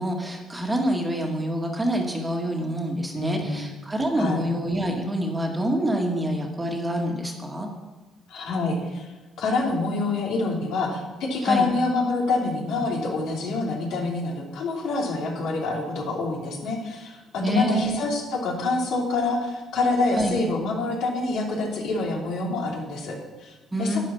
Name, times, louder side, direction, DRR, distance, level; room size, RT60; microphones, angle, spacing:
voice 1, 0.0-7.7 11.4-11.7 17.4-18.0 20.2-20.4 23.7-24.0, equal, 15° right, 1 dB, 1.9 m, -26 dB
voice 2, 3.1-3.6 4.1-4.4 8.3-23.5 23.8-24.0, left 3 dB, 75° left, -1 dB, 3.2 m, -26 dB
12.0 x 10.0 x 5.8 m, 1.2 s
cardioid pair, 125°, 0 cm